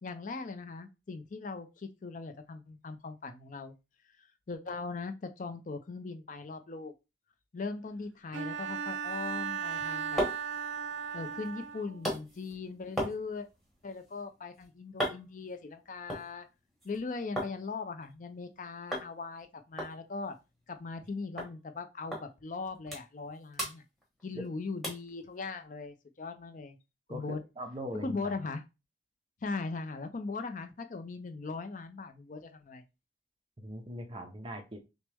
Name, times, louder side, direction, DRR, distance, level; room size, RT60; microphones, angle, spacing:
voice 1, 0.0-3.7 4.2-6.9 7.5-10.2 11.1-13.5 13.8-16.5 16.8-20.4 20.7-23.8 24.2-26.8 27.1-27.4 28.0-28.6 29.4-32.8, left 4 dB, 45° left, 8 dB, 0.4 m, -39 dB
Bowed string instrument, 8.3-12.0, right 7 dB, 80° right, 0.5 m, -36 dB
sound 1, 9.9-17.6 17.9-18.5 18.9-19.1 19.4-19.5 19.8-21.1 21.4-21.5 22.1-22.2 22.6-23.3 23.5-24.5 24.8-25.1 25.6-25.7, equal, ahead, 1.3 m, -38 dB
voice 2, 27.1-28.4 33.6-34.8, equal, 30° right, 3 dB, 0.8 m, -41 dB
6.0 x 2.1 x 3.4 m, 0.26 s
head